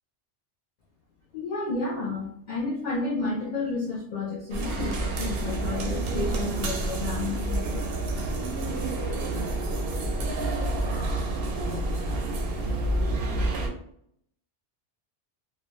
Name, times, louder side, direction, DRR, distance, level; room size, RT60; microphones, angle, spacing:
voice 1, 1.3-8.0, left 3 dB, 55° left, -3 dB, 0.5 m, -31 dB
sound 1, 4.5-13.7, right 2 dB, 65° right, 0.7 m, -28 dB
2.3 x 2.2 x 3.0 m, 0.70 s
omnidirectional pair, 1.2 m